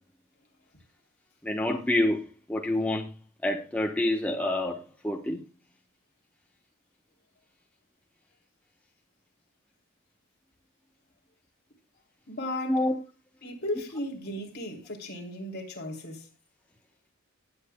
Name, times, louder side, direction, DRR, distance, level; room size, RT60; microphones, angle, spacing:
voice 1, 1.4-3.1 3.4-5.4 12.7-12.9, left 1 dB, 5° left, 1.0 m, -27 dB
voice 2, 12.3-12.8 13.4-16.2, left 1 dB, 50° left, 3.3 m, -35 dB
18.5 x 8.6 x 2.2 m
head